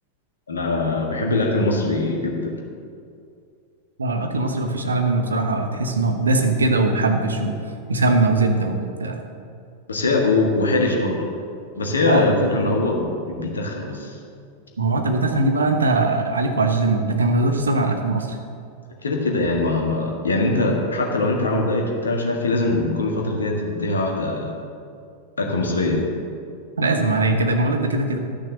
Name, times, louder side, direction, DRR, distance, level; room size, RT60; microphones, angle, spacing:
voice 1, 0.5-2.6 9.9-11.2 11.7-14.2 19.0-24.5 25.4-26.1, left 2 dB, 70° left, 0 dB, 1.7 m, -22 dB
voice 2, 4.0-7.6 7.9-9.2 12.0-12.5 14.8-18.4 26.8-28.2, right 2 dB, 75° right, 5 dB, 1.1 m, -21 dB
12.0 x 6.5 x 6.5 m, 2.4 s
figure-of-eight pair, 90°, 0 cm